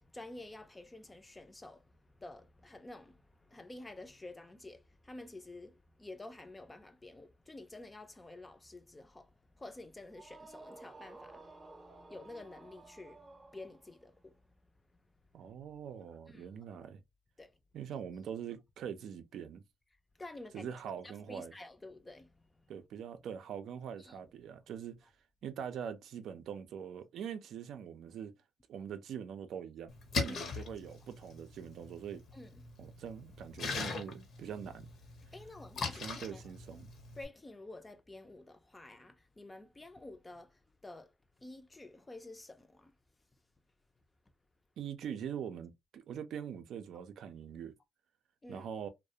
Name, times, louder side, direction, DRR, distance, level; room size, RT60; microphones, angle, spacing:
voice 1, 0.0-1.8 2.2-9.3 9.6-13.3 13.5-14.3 16.3-16.4 17.4-17.5 20.2-20.7 21.0-22.3 24.0-24.2 30.2-30.4 32.3-32.7 35.3-36.4 37.2-41.1 41.4-42.9 48.4-48.7, left 2 dB, 20° left, 0.4 m, -50 dB
sound 1, 10.1-14.1, right 3 dB, 25° right, 0.6 m, -54 dB
voice 2, 15.3-17.0 17.7-19.6 20.5-21.5 22.7-25.1 25.4-28.3 28.7-32.2 32.8-34.9 35.8-36.9 44.8-47.7 48.5-48.9, right 8 dB, 75° right, 0.4 m, -43 dB
Splash splatter, 29.9-37.3, left 4 dB, 65° left, 0.7 m, -41 dB
2.4 x 2.0 x 2.7 m
cardioid pair, 90°, 0 cm